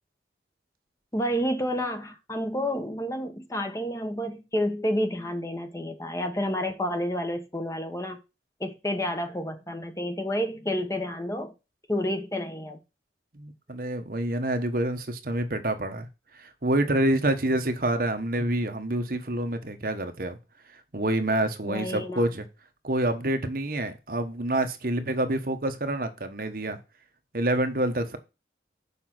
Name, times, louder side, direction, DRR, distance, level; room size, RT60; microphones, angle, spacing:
voice 1, 1.1-8.2 8.6-11.5 11.9-12.8 21.6-22.3, equal, 15° left, 1.1 m, -30 dB
voice 2, 13.3-16.1 16.3-20.4 20.9-22.4 22.8-26.8 27.3-28.2, right 1 dB, 50° right, 1.2 m, -27 dB
7.0 x 5.3 x 6.0 m
head